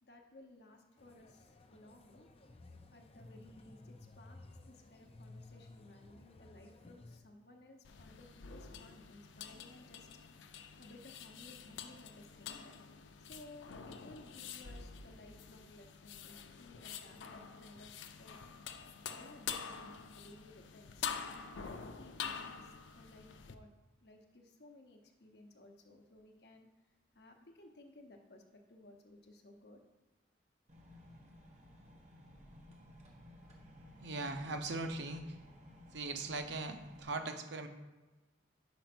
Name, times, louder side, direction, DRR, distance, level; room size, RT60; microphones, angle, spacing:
voice 1, 0.0-2.3 2.9-10.1 10.8-12.8 13.2-18.4 19.1-21.1 21.6-23.7 24.0-26.7 27.1-29.8, left 1 dB, 60° left, 3 dB, 0.8 m, -58 dB
sound 1, 1.0-7.2, left 2 dB, 30° left, 0.5 m, -56 dB
sound 2, 7.8-23.5, left 7 dB, 90° left, 0.5 m, -47 dB
sound 3, 30.7-37.0, left 1 dB, 40° right, 1.1 m, -56 dB
voice 2, 34.0-35.4 35.9-37.7, right 3 dB, 75° right, 6 dB, 0.7 m, -40 dB
5.2 x 5.1 x 6.0 m, 1.2 s
head